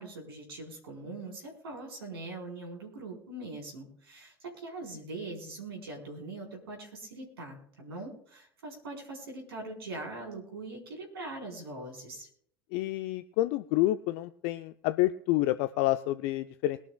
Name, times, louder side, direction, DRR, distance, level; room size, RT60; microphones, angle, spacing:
voice 1, 0.0-12.3, right 2 dB, 75° right, 0 dB, 4.3 m, -42 dB
voice 2, 12.7-16.8, left 16 dB, 55° left, 12 dB, 0.5 m, -28 dB
22.5 x 11.5 x 2.3 m, 0.64 s
figure-of-eight pair, 70°, 13 cm